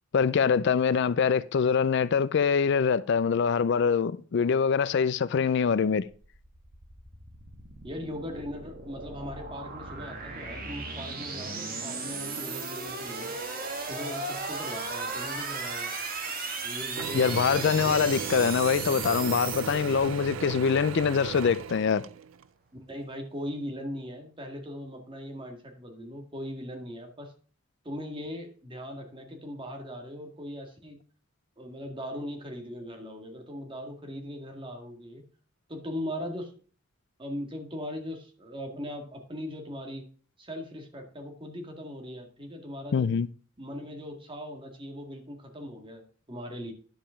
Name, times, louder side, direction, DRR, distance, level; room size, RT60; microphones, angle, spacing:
voice 1, 0.1-6.0 17.1-22.0 42.9-43.3, left 6 dB, 55° left, 0.4 m, -24 dB
sound 1, 6.1-20.5, right 4 dB, 45° right, 1.7 m, -36 dB
voice 2, 7.8-13.3 13.9-15.9 16.6-18.6 22.9-27.3 27.8-31.0 31.6-35.2 35.7-36.5 37.2-40.0 40.4-43.1 43.6-46.7, equal, 25° right, 1.9 m, -39 dB
Mechanisms / Drill, 17.0-22.5, right 6 dB, 70° right, 0.4 m, -37 dB
10.5 x 5.2 x 5.7 m
head